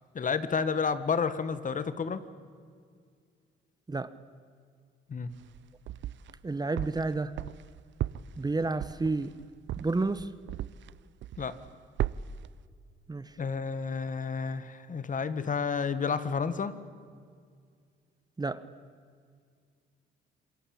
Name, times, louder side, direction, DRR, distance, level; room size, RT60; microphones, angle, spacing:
voice 1, 0.1-2.3 5.1-5.3 11.4-11.6 13.4-16.8, left 5 dB, 40° left, 1.6 m, -31 dB
sound 1, 5.3-6.4 6.8-10.9 11.2-11.7 12.0-12.5, right 12 dB, 70° right, 0.6 m, -35 dB
voice 2, 6.4-7.4 8.4-9.4 9.8-10.3 13.1-13.4 18.4-18.7, right 3 dB, 20° right, 1.0 m, -30 dB
27.5 x 21.5 x 8.8 m
cardioid pair, 90°, 20 cm